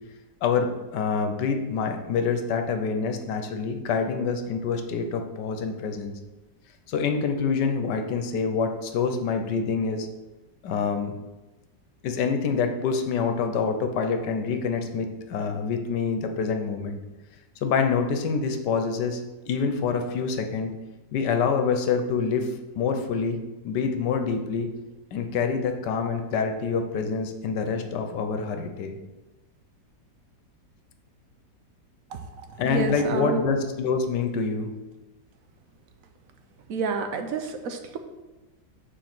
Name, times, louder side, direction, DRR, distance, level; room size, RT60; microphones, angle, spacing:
voice 1, 0.4-6.1 6.9-10.1 10.6-11.1 12.0-17.0 17.6-19.2 19.5-20.7 21.1-23.4 23.6-24.7 25.1-28.9 32.6-34.7, left 5 dB, 70° left, 6 dB, 1.4 m, -26 dB
voice 2, 32.6-33.4 36.7-38.0, right 4 dB, 60° right, 6 dB, 1.0 m, -29 dB
7.1 x 4.5 x 6.0 m, 1.1 s
omnidirectional pair, 2.0 m